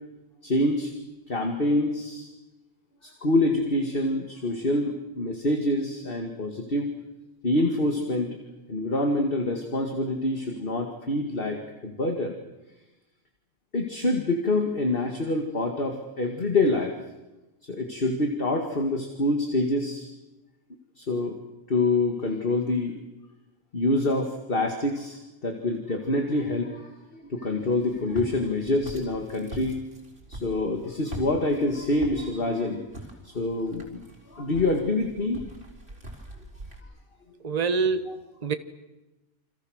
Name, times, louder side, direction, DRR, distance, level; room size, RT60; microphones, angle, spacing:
voice 1, 0.4-0.9 1.3-2.3 3.0-6.9 7.4-8.4 8.7-12.4 13.7-17.0 17.7-20.1 21.0-21.4 21.7-23.0 23.7-29.8 30.3-32.9 33.2-35.4, left 2 dB, 40° left, 3 dB, 2.3 m, -26 dB
Walk footsteps, 27.6-36.8, right 1 dB, 45° right, 4.4 m, -43 dB
voice 2, 37.4-38.5, right 4 dB, 30° right, 9 dB, 1.3 m, -26 dB
29.0 x 26.0 x 6.5 m, 1.0 s
omnidirectional pair, 1.4 m